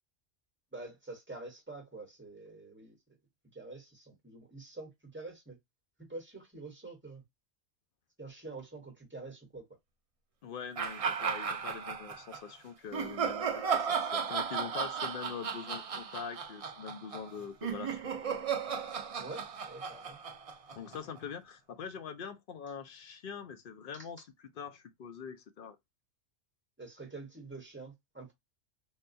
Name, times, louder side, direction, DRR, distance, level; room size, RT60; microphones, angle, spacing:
voice 1, 0.7-2.9 3.5-5.6 6.1-7.2 8.2-9.6 19.2-20.2 26.8-28.3, right 3 dB, 10° right, 1.1 m, -46 dB
voice 2, 10.4-18.1 20.7-25.8, left 7 dB, 60° left, 0.6 m, -43 dB
sound 1, 10.8-12.4 12.9-21.2, right 6 dB, 65° right, 0.3 m, -35 dB
3.6 x 2.3 x 2.5 m
omnidirectional pair, 1.2 m